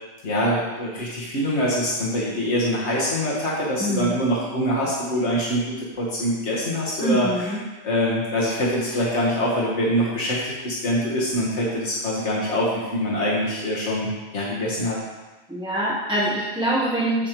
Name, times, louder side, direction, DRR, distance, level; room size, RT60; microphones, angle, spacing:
voice 1, 0.2-7.5 7.8-15.0, equal, 80° left, -5 dB, 1.6 m, -24 dB
voice 2, 3.8-4.1 7.0-7.6 15.5-17.3, right 1 dB, 5° right, -7 dB, 1.0 m, -24 dB
13.5 x 5.0 x 3.0 m, 1.2 s
omnidirectional pair, 1.1 m